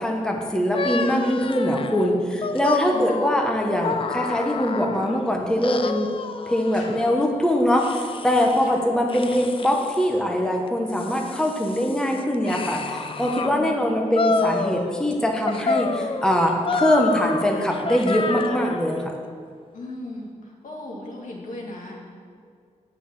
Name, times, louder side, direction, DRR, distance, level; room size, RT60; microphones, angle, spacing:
voice 1, 0.0-6.1 6.5-19.1, equal, 5° left, 1 dB, 1.0 m, -22 dB
sound 1, 0.7-5.2 5.6-7.1 7.8-8.7 9.1-10.1 10.7-13.5 14.1-15.1 15.5-18.9, left 4 dB, 40° left, 0.5 m, -29 dB
voice 2, 2.9-3.3 6.7-7.0 13.2-13.8 19.7-20.3 20.6-22.1, left 1 dB, 80° left, -2 dB, 2.0 m, -37 dB
9.1 x 5.8 x 7.4 m, 2.2 s
wide cardioid pair, 115°, 13 cm